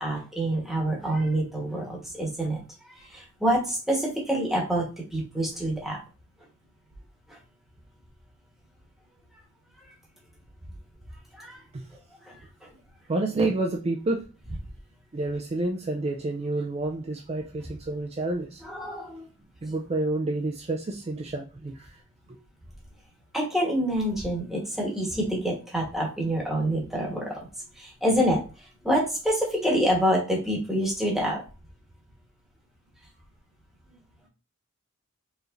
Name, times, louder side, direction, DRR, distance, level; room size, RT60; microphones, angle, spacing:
voice 1, 0.0-2.6 2.9-4.9 5.1-6.0 11.3-11.6 12.3-12.4 12.6-12.7 18.6-19.2 23.3-27.5 27.8-28.4 28.8-31.4, equal, ahead, 1.1 m, -26 dB
voice 2, 13.1-14.3 15.1-18.6 19.6-21.9, right 2 dB, 30° right, 0.3 m, -29 dB
4.7 x 3.1 x 2.5 m
head